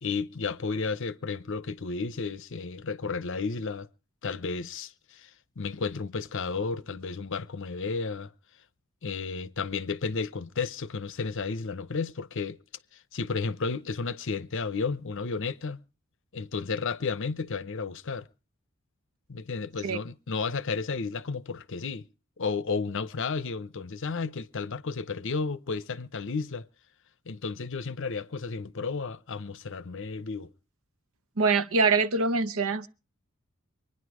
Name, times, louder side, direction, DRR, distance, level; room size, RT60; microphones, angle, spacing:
voice 1, 0.0-3.9 4.2-5.3 5.6-8.3 9.0-12.6 13.1-15.8 16.3-18.3 19.3-22.1 22.4-26.6 27.3-30.5, left 4 dB, 60° left, 0.7 m, -32 dB
voice 2, 31.4-32.9, right 4 dB, 80° right, 0.9 m, -24 dB
24.5 x 10.0 x 4.9 m
head